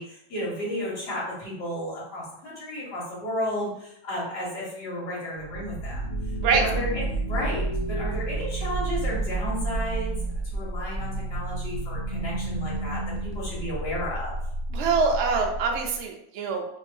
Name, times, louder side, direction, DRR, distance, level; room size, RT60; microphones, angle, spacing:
voice 1, 0.0-6.1 6.5-10.2 10.4-14.4, left 1 dB, 40° left, -6 dB, 1.3 m, -33 dB
sound 1, 5.4-16.0, right 2 dB, 70° left, 0.8 m, -30 dB
voice 2, 14.7-16.7, right 5 dB, 80° right, 2 dB, 0.6 m, -24 dB
2.7 x 2.6 x 3.2 m, 0.75 s
omnidirectional pair, 1.8 m